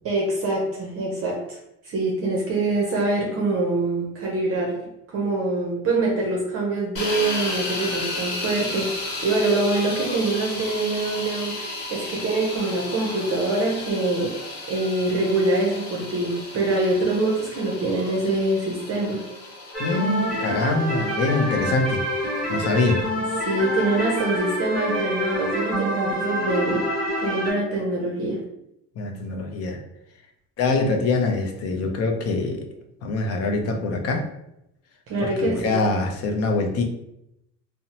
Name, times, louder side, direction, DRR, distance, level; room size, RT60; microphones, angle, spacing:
voice 1, 0.0-1.6 1.8-14.4 14.7-19.2 23.4-26.9 27.2-28.4 35.1-35.8, right 2 dB, 45° right, -1 dB, 0.6 m, -24 dB
sound 1, 7.0-24.9, left 2 dB, 70° left, 0.9 m, -34 dB
sound 2, 19.7-27.5, equal, ahead, 0.8 m, -27 dB
voice 2, 19.8-22.0 22.5-23.0 29.0-29.8 30.6-32.7 33.0-34.3 35.2-36.8, left 3 dB, 45° left, 4 dB, 0.5 m, -24 dB
2.7 x 2.0 x 2.8 m, 0.82 s
cardioid pair, 135°, 33 cm